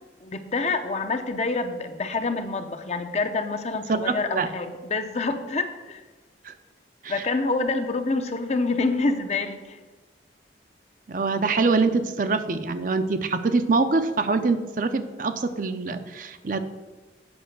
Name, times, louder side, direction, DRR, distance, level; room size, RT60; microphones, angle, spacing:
voice 1, 0.2-6.0 7.1-9.8, left 3 dB, 35° left, 8 dB, 0.6 m, -27 dB
voice 2, 3.9-4.5 6.4-6.5 7.0-7.2 11.1-16.6, right 3 dB, 45° right, 9 dB, 0.5 m, -24 dB
7.9 x 5.5 x 6.6 m, 1.2 s
head